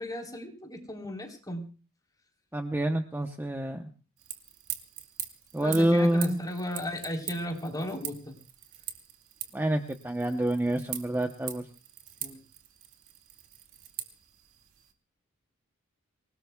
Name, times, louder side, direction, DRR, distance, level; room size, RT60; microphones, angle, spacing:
voice 1, 0.0-1.7 5.6-8.4 12.2-12.4, left 1 dB, 20° left, 0 dB, 3.7 m, -35 dB
voice 2, 2.5-3.8 5.5-6.4 9.5-11.6, right 1 dB, 10° right, 5 dB, 0.9 m, -27 dB
sound 1, 4.2-14.9, right 11 dB, 70° right, 2.2 m, -43 dB
26.5 x 18.5 x 2.3 m, 0.36 s
head